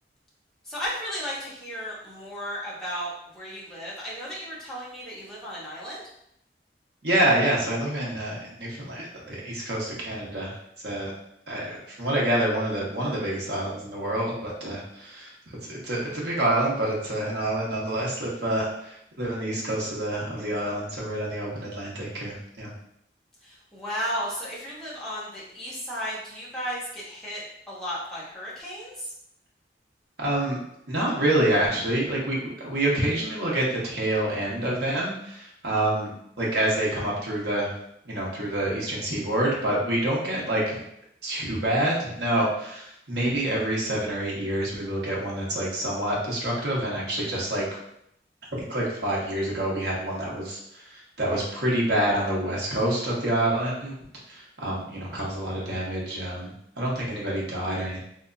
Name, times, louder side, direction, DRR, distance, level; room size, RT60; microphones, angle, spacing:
voice 1, 0.6-6.0 23.4-29.1, equal, 5° left, -8 dB, 0.8 m, -34 dB
voice 2, 7.0-10.6 10.8-11.1 11.5-22.7 30.2-30.6 30.9-36.1 36.4-37.7 38.0-40.8 41.2-47.6 48.5-53.9 54.3-58.0, right 1 dB, 70° right, -4 dB, 1.0 m, -27 dB
3.3 x 2.9 x 2.6 m, 0.75 s
head